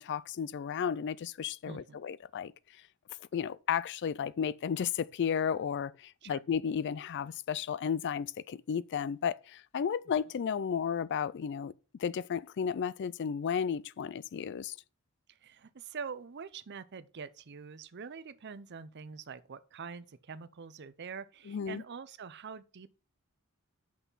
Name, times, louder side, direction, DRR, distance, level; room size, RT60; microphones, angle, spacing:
voice 1, 0.0-2.5 3.3-11.7 12.0-14.8 21.5-21.8, left 7 dB, 55° left, 0.3 m, -33 dB
voice 2, 1.6-2.0 6.2-6.4 15.3-22.9, right 5 dB, 50° right, 0.6 m, -45 dB
6.3 x 5.7 x 5.5 m
head